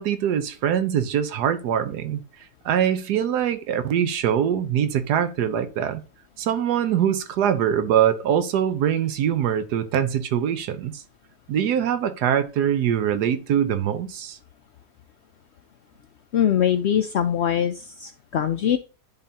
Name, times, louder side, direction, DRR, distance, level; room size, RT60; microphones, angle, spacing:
voice 1, 0.0-2.2 2.6-6.0 6.4-11.0 11.5-14.4, right 9 dB, 90° right, 1.3 m, -23 dB
voice 2, 16.3-18.8, left 9 dB, 85° left, 0.5 m, -22 dB
10.5 x 3.8 x 2.8 m
omnidirectional pair, 1.7 m